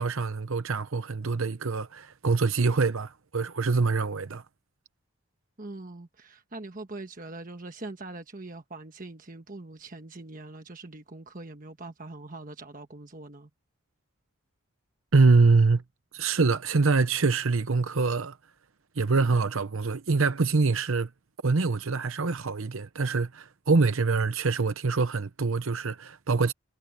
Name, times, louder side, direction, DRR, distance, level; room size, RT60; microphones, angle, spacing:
voice 1, 0.0-4.4 15.1-15.8 16.1-18.4 19.0-21.1 21.4-26.5, right 4 dB, 70° right, 0.8 m, -24 dB
voice 2, 5.6-13.5, right 2 dB, 40° right, 1.3 m, -42 dB
head